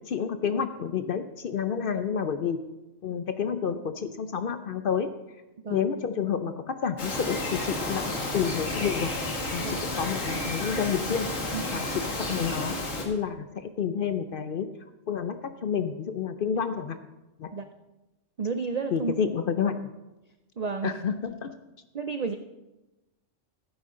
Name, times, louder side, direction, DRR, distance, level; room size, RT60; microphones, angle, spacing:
voice 1, 0.1-2.6 3.0-5.1 5.7-9.1 9.5-11.3 11.7-14.7 15.1-17.0 17.4-17.5 18.9-19.8 20.8-21.6, left 7 dB, 60° left, 10 dB, 0.6 m, -29 dB
Bird vocalization bird call bird song, 7.0-13.0, left 2 dB, 80° left, 2.1 m, -31 dB
voice 2, 11.5-11.8 16.7-16.8 17.5-17.6 18.4-19.1 20.6-21.0 21.9-22.4, right 5 dB, 60° right, 7 dB, 0.4 m, -32 dB
15.0 x 9.4 x 3.7 m, 1.0 s
omnidirectional pair, 1.3 m